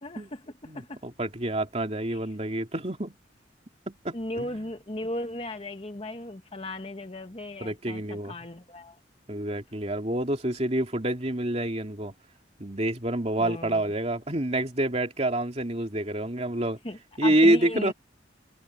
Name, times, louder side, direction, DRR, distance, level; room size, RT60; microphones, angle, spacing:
voice 1, 0.0-1.0 2.1-2.2 4.1-9.0 13.4-13.8 16.8-17.9, left 1 dB, 30° left, 1.4 m, -36 dB
voice 2, 0.7-3.1 3.9-4.5 7.6-8.3 9.3-12.1 12.6-16.8 17.2-17.9, right 1 dB, 35° right, 2.9 m, -27 dB
head